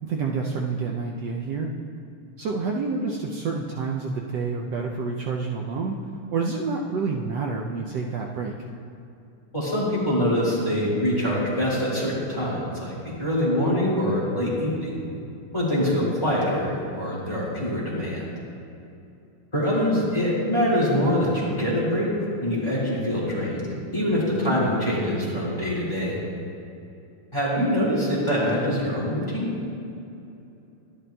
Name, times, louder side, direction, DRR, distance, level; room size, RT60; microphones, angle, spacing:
voice 1, 0.0-1.7 2.4-6.0 6.3-8.5 19.9-20.1 27.6-27.9, right 4 dB, 85° right, 0 dB, 0.9 m, -28 dB
voice 2, 9.5-12.9 13.2-15.0 15.5-18.4 19.5-22.1 22.4-26.2 27.3-29.5, equal, 15° left, -7 dB, 1.9 m, -24 dB
12.0 x 11.0 x 2.2 m, 2.7 s
omnidirectional pair, 2.4 m